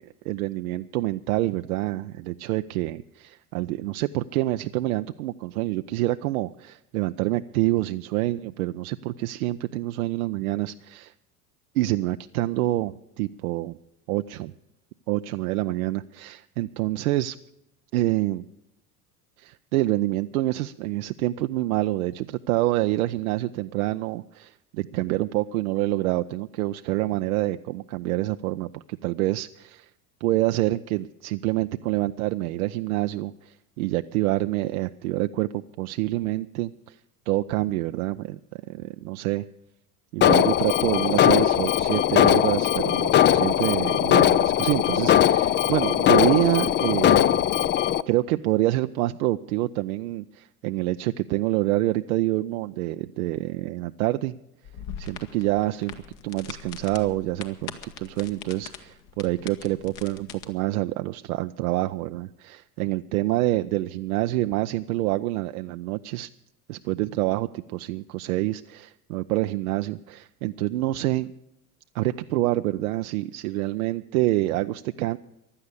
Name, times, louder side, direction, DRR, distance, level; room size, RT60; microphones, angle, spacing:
voice 1, 0.0-11.1 11.7-13.8 14.1-14.5 15.1-17.4 17.9-18.4 19.4-29.9 30.2-37.0 37.3-39.4 40.1-47.5 48.1-54.4 55.0-55.9 56.2-57.7 58.0-66.3 66.7-71.3 71.9-75.2, right 17 dB, 70° right, 9 dB, 0.6 m, -27 dB
Alarm, 40.2-48.0, left 10 dB, 25° left, 0.4 m, -20 dB
sound 1, 54.6-60.4, left 8 dB, 60° left, 1.7 m, -42 dB
15.5 x 11.5 x 6.7 m, 0.86 s
hypercardioid pair, 80°, 46 cm